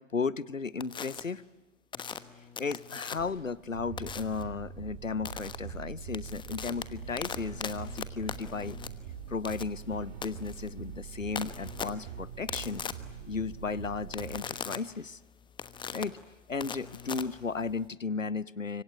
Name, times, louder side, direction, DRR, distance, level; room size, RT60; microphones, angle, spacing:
voice 1, 0.0-1.4 2.6-8.8 9.3-12.8 13.3-15.2 15.9-16.2 16.5-18.8, left 4 dB, 85° left, 21 dB, 0.9 m, -35 dB
sound 1, 0.8-1.2 1.9-3.4 4.0-4.4 5.2-5.6 6.0-17.9, left 7 dB, 10° left, 1.2 m, -40 dB
sound 2, 3.7-14.4, right 8 dB, 50° right, 2.4 m, -43 dB
26.0 x 24.5 x 9.2 m, 1.2 s
figure-of-eight pair, 100°, 38 cm